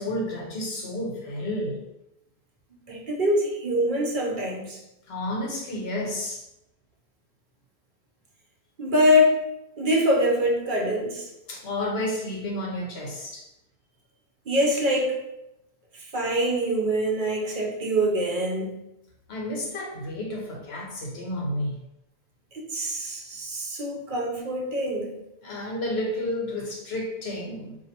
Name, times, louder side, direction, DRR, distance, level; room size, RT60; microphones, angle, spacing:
voice 1, 0.0-1.8 5.1-6.4 11.5-13.5 19.3-21.8 25.4-27.8, left 1 dB, 75° left, -1 dB, 1.1 m, -31 dB
voice 2, 2.9-4.8 8.8-9.4 9.8-11.3 14.5-15.2 16.1-18.7 22.7-25.1, equal, 55° right, 0 dB, 0.8 m, -24 dB
4.0 x 2.6 x 2.8 m, 0.87 s
omnidirectional pair, 1.1 m